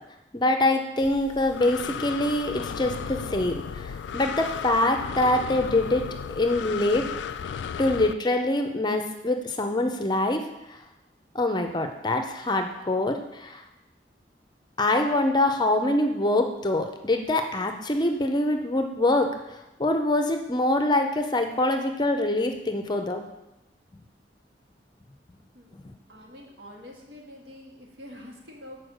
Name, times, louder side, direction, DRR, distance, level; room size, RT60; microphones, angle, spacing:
voice 1, 0.3-6.0 6.4-7.1 7.8-10.8 11.3-13.6 14.8-19.3 19.8-23.2 25.7-25.8, left 2 dB, 25° left, 5 dB, 0.6 m, -24 dB
Breathing, 1.0-8.1, left 7 dB, 85° left, 0.3 m, -35 dB
voice 2, 26.1-28.8, left 1 dB, 75° right, -1 dB, 1.7 m, -45 dB
6.4 x 4.6 x 6.4 m, 0.96 s
head